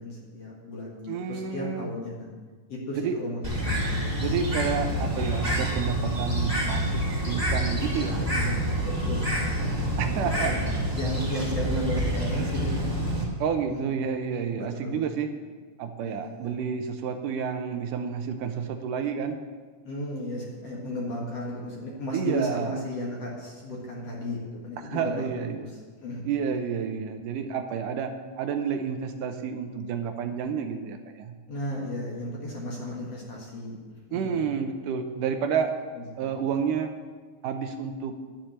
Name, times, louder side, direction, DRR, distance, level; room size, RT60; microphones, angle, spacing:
voice 1, 0.0-2.3 2.7-3.9 7.8-9.8 10.1-10.6 10.9-13.0 13.7-13.8 14.5-15.0 16.0-16.5 19.8-25.7 26.0-26.3 31.5-33.8 34.1-34.3 36.0-36.4, left 1 dB, 50° left, -3 dB, 2.4 m, -35 dB
voice 2, 1.1-1.9 2.9-3.1 4.2-8.2 10.0-10.7 13.4-15.3 15.8-19.4 22.1-22.7 24.8-25.7 26.3-31.3 34.1-35.7 36.2-36.9 37.4-38.2, right 7 dB, 75° right, 6 dB, 2.1 m, -30 dB
Bird, 3.4-13.2, right 1 dB, 10° right, 2.4 m, -27 dB
11.5 x 7.2 x 8.9 m, 1.5 s
omnidirectional pair, 4.2 m